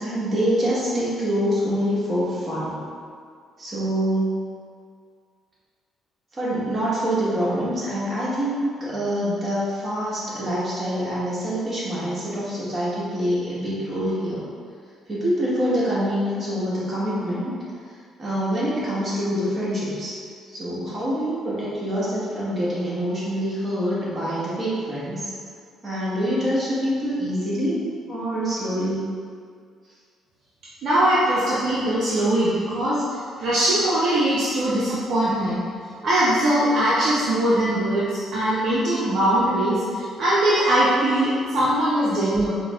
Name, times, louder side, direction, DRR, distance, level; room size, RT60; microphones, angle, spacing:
voice 1, 0.0-2.8 3.6-4.4 6.3-14.4 15.1-17.5 17.9-20.2 20.5-25.3 25.8-27.8 28.1-29.0, equal, 35° right, -8 dB, 1.3 m, -25 dB
voice 2, 30.8-33.0 33.4-35.6 36.0-42.5, right 1 dB, 65° right, -8 dB, 0.5 m, -21 dB
4.5 x 2.1 x 2.3 m, 2.1 s
supercardioid pair, 70°, 0 cm